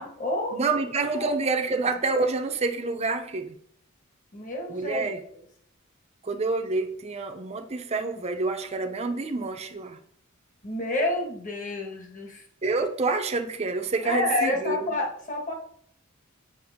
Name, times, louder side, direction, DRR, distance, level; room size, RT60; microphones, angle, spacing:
voice 1, 0.0-0.6 1.1-1.3 1.7-1.8 4.3-5.2 10.6-12.7 14.0-15.5, left 2 dB, 40° left, 1 dB, 1.6 m, -29 dB
voice 2, 0.5-3.5 4.7-5.2 6.2-10.0 12.6-14.9, right 3 dB, 30° right, 5 dB, 0.7 m, -27 dB
7.8 x 6.0 x 3.6 m, 0.64 s
head